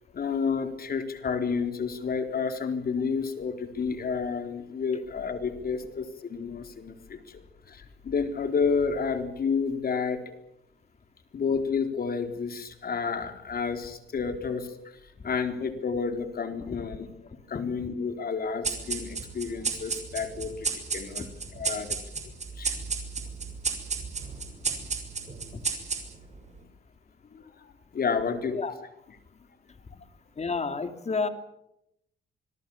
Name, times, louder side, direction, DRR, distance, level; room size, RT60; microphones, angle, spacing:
voice 1, 0.1-10.2 11.3-17.2 17.5-22.0 22.6-22.8 27.3-28.6 29.9-30.0, left 5 dB, 50° left, 6 dB, 4.1 m, -30 dB
sound 1, 18.6-26.4, right 5 dB, 35° right, 6.2 m, -33 dB
voice 2, 30.4-31.3, left 4 dB, 35° left, 8 dB, 3.0 m, -30 dB
26.0 x 21.5 x 7.3 m, 0.82 s
cardioid pair, 90°, 20 cm